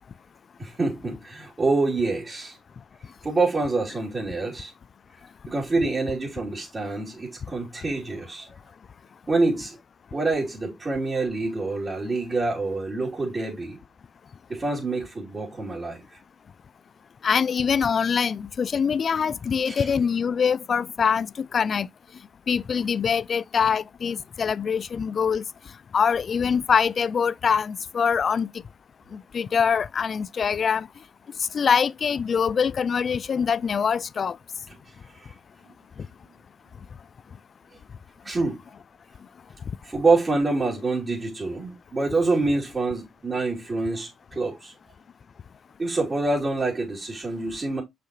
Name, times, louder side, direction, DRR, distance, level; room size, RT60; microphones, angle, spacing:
voice 1, 0.6-2.6 3.2-4.7 5.5-8.5 9.3-9.8 10.1-13.8 14.5-16.0 19.7-19.9 35.2-35.3 38.2-38.6 39.8-44.7 45.8-47.8, right 3 dB, 35° right, 3.1 m, -26 dB
voice 2, 17.2-21.9 22.5-25.4 25.9-28.5 29.1-30.9 31.5-34.4, left 6 dB, 50° left, 0.3 m, -24 dB
5.9 x 5.7 x 3.0 m
cardioid pair, 75°, 0 cm